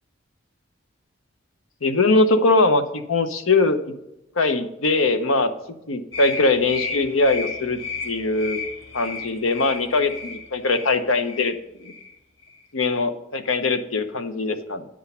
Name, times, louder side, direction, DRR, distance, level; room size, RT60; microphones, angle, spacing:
voice 1, 1.8-3.9 4.4-5.5 5.9-7.8 8.0-8.6 8.9-11.5 11.8-11.9 12.7-14.9, left 3 dB, 90° left, 9 dB, 0.9 m, -21 dB
sound 1, 6.1-11.6 11.8-12.1 12.4-12.6, left 4 dB, 65° left, 1.5 m, -34 dB
9.3 x 6.3 x 5.6 m, 0.87 s
head